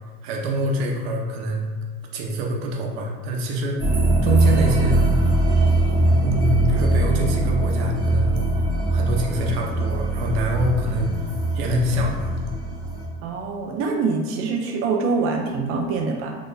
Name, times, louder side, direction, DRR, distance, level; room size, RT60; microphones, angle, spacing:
voice 1, 0.2-1.6 2.1-3.9 4.2-5.0 6.2-8.4 8.9-11.1 11.5-12.3, right 1 dB, 80° right, 0 dB, 0.9 m, -25 dB
sound 1, 3.8-13.1, right 2 dB, 15° right, 1.1 m, -21 dB
voice 2, 13.2-16.3, right 4 dB, 45° right, 1 dB, 0.6 m, -24 dB
3.5 x 3.5 x 2.6 m, 1.5 s
supercardioid pair, 110°, 31 cm